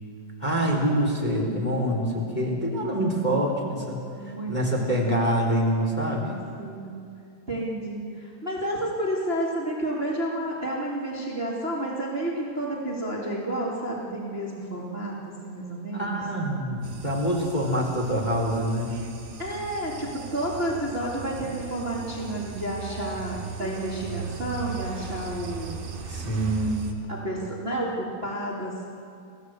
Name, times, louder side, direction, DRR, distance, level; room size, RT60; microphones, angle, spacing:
voice 1, 0.4-4.0 4.5-6.3 15.9-18.9 26.1-27.0, right 1 dB, 10° left, -1 dB, 3.4 m, -25 dB
voice 2, 4.1-4.5 4.9-5.0 6.2-6.3 6.6-6.9 7.5-16.2 19.4-25.8 27.1-28.9, right 1 dB, 15° right, -3 dB, 2.4 m, -31 dB
sound 1, 16.8-26.9, right 5 dB, 55° right, 3.6 m, -38 dB
29.0 x 17.5 x 8.0 m, 2.4 s
omnidirectional pair, 5.4 m